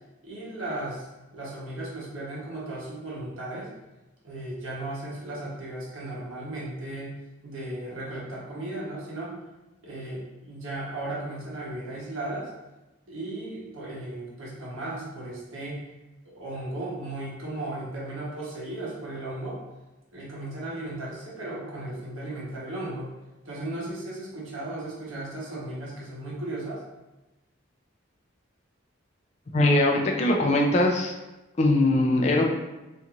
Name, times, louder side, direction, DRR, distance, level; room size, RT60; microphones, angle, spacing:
voice 1, 0.2-3.7 4.2-9.4 9.8-12.5 13.1-15.8 16.2-19.6 20.1-23.1 23.4-26.8, right 2 dB, 90° right, -5 dB, 0.9 m, -36 dB
voice 2, 29.5-31.1 31.6-32.4, left 1 dB, 35° left, 0 dB, 0.3 m, -21 dB
2.6 x 2.4 x 2.9 m, 1.0 s
head